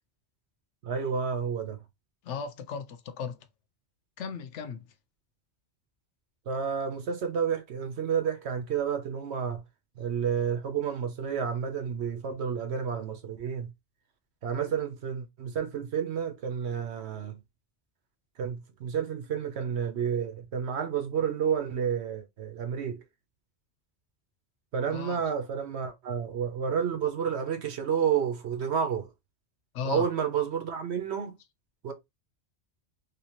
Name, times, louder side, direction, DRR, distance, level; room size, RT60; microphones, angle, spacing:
voice 1, 0.8-1.8 6.5-9.6 10.0-13.7 14.4-17.4 18.4-23.0 24.7-29.1 29.8-31.3 31.8-31.9, right 7 dB, 70° right, 1.1 m, -30 dB
voice 2, 2.2-3.4 4.2-4.8 24.9-25.2 29.7-30.0, left 6 dB, 90° left, 0.9 m, -36 dB
3.4 x 2.8 x 2.9 m
omnidirectional pair, 1.2 m